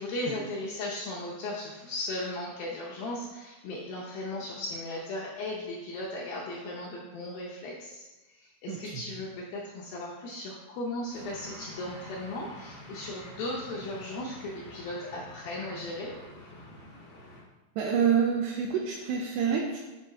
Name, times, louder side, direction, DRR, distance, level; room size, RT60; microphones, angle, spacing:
voice 1, 0.0-16.1, left 1 dB, 80° left, -5 dB, 2.1 m, -37 dB
voice 2, 8.7-9.0 17.8-19.8, right 7 dB, 85° right, 0 dB, 2.4 m, -27 dB
sound 1, 11.1-17.4, left 1 dB, 60° left, 1.6 m, -47 dB
8.6 x 3.1 x 4.8 m, 1.1 s
omnidirectional pair, 5.3 m